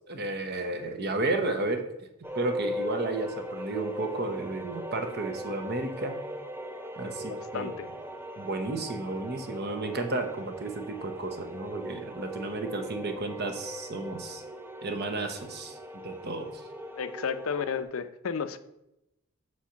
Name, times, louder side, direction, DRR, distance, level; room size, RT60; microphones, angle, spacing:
voice 1, 0.1-1.8 2.3-6.2 7.0-7.7 8.4-14.4 14.8-15.8 16.0-16.5, right 2 dB, 50° right, 6 dB, 0.9 m, -32 dB
sound 1, 2.2-17.8, left 1 dB, 10° right, 0.5 m, -39 dB
voice 2, 7.3-7.9 17.0-18.6, left 6 dB, 75° left, 11 dB, 0.5 m, -33 dB
6.5 x 4.4 x 5.7 m, 0.87 s
head